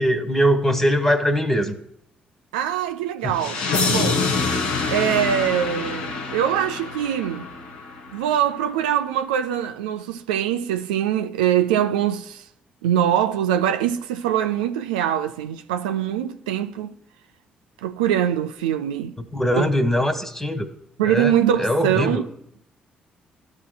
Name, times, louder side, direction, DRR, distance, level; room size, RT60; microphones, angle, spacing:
voice 1, 0.0-1.7 3.2-3.3 19.3-20.7 21.0-21.3 21.6-22.2, equal, 10° left, 1.4 m, -21 dB
voice 2, 2.5-4.3 4.9-7.5 8.1-12.4 12.8-16.9 17.8-19.2 19.6-19.7 21.0-22.2, right 10 dB, 75° right, 0.4 m, -23 dB
sound 1, 3.3-8.3, left 4 dB, 75° left, 1.1 m, -26 dB
13.5 x 5.2 x 2.2 m
figure-of-eight pair, 40°, 5 cm